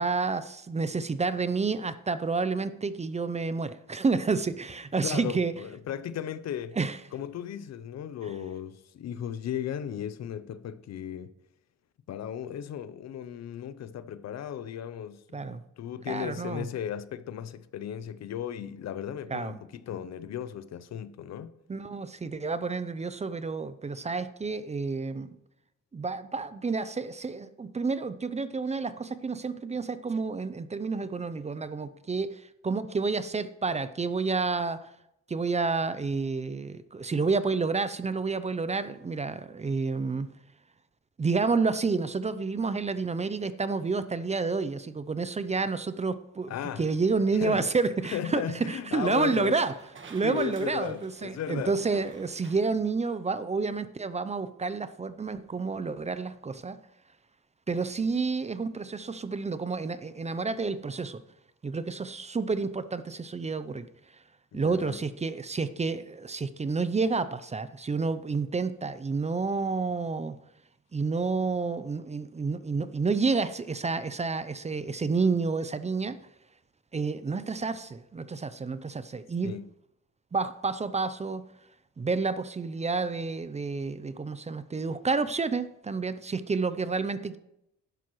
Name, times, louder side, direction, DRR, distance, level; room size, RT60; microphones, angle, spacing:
voice 1, 0.0-5.5 6.8-7.0 15.3-15.6 16.1-16.7 19.3-19.6 21.7-25.4 25.9-34.9 35.3-40.3 41.2-46.5 46.8-49.7 50.1-56.8 57.7-61.2 61.6-63.9 64.5-70.4 70.9-76.2 76.9-79.5 80.3-81.4 82.0-87.4, right 4 dB, 20° right, 0.6 m, -29 dB
voice 2, 5.0-6.8 7.1-11.3 12.1-21.5 46.5-46.8 47.3-47.7 48.1-49.6 50.2-51.8 64.5-65.0 79.4-79.7, left 9 dB, 60° left, 0.7 m, -36 dB
sound 1, 48.0-52.7, right 4 dB, 40° right, 1.5 m, -50 dB
12.0 x 10.5 x 3.1 m
cardioid pair, 90°, 30 cm